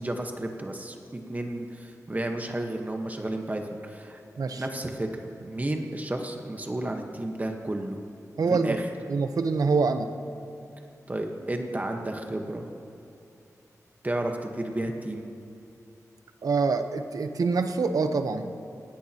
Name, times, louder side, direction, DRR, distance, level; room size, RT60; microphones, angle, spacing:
voice 1, 0.0-4.2 4.6-8.0 8.5-8.9 11.1-12.7 14.0-15.3, right 1 dB, 25° right, 3 dB, 1.2 m, -32 dB
voice 2, 8.4-8.8 9.1-10.1 16.4-18.5, right 4 dB, 90° right, 8 dB, 0.8 m, -25 dB
19.5 x 17.5 x 2.9 m, 2.7 s
wide cardioid pair, 85°, 6 cm